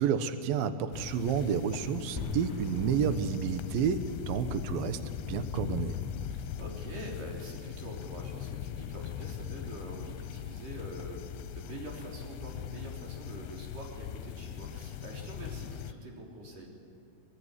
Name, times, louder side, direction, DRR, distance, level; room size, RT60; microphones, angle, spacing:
voice 1, 0.0-6.0, right 7 dB, 70° right, 11 dB, 2.6 m, -30 dB
sound 1, 0.9-15.9, left 9 dB, 75° left, 2.6 m, -40 dB
sound 2, 2.2-12.4, left 3 dB, 5° left, 2.0 m, -48 dB
voice 2, 6.3-16.7, right 1 dB, 50° right, 0 dB, 5.0 m, -45 dB
25.5 x 21.0 x 9.9 m, 2.4 s
omnidirectional pair, 5.1 m